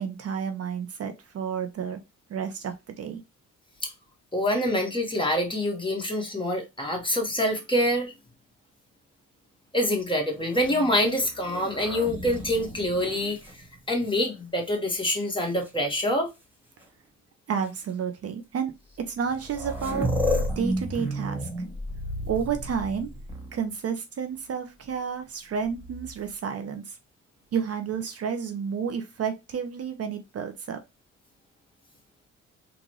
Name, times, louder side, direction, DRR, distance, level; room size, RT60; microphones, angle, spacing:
voice 1, 0.0-2.0 2.3-3.2 17.5-18.7 19.0-20.1 20.6-21.5 22.3-23.1 23.5-27.0 27.5-30.8, right 7 dB, 55° right, 0.7 m, -31 dB
voice 2, 4.3-8.1 9.7-16.3, left 1 dB, 15° left, 1.6 m, -26 dB
sound 1, 10.4-14.3 15.0-15.7 16.8-16.9 17.6-17.8 18.9-19.0 19.2-23.7 25.6-26.3, equal, 5° right, 1.7 m, -33 dB
3.8 x 2.5 x 3.1 m
cardioid pair, 90°, 30 cm